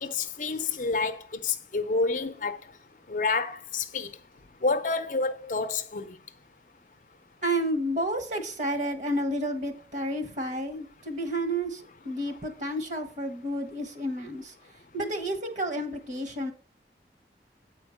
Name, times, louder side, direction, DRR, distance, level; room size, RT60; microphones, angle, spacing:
voice 1, 0.0-2.6 3.1-4.1 4.6-6.2, left 4 dB, 45° left, 0.7 m, -29 dB
voice 2, 7.4-14.5 14.9-16.5, right 1 dB, 40° right, 1.2 m, -31 dB
8.7 x 4.5 x 6.3 m
head